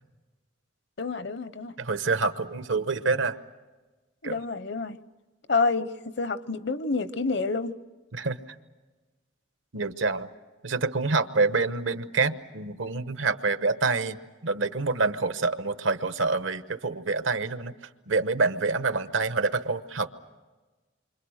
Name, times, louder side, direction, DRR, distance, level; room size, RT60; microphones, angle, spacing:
voice 1, 1.0-1.7 4.2-5.0 5.5-7.7, left 4 dB, 60° left, 0.8 m, -28 dB
voice 2, 1.8-3.4 4.2-4.3 8.1-8.4 9.7-10.3 10.6-14.2 14.4-17.7 18.1-20.2, right 3 dB, 85° right, 1.0 m, -27 dB
28.5 x 25.0 x 6.5 m
head